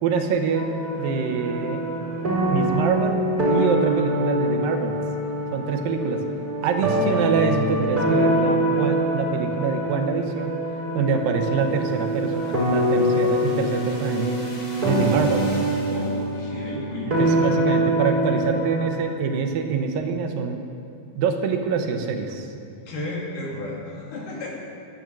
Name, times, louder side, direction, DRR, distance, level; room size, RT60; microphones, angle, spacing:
voice 1, 0.0-1.8 2.5-3.2 3.5-5.0 5.5-6.2 6.6-10.6 10.9-14.4 14.8-15.5 17.2-20.6 21.1-22.5, right 5 dB, 80° right, 5 dB, 2.7 m, -25 dB
sound 1, 0.5-19.0, right 1 dB, 25° right, 3.6 m, -24 dB
sound 2, 11.5-16.4, left 2 dB, 40° left, 1.9 m, -41 dB
voice 2, 15.8-17.2 22.9-24.5, left 2 dB, 65° left, -3 dB, 3.5 m, -33 dB
12.0 x 9.9 x 7.6 m, 2.4 s
omnidirectional pair, 4.2 m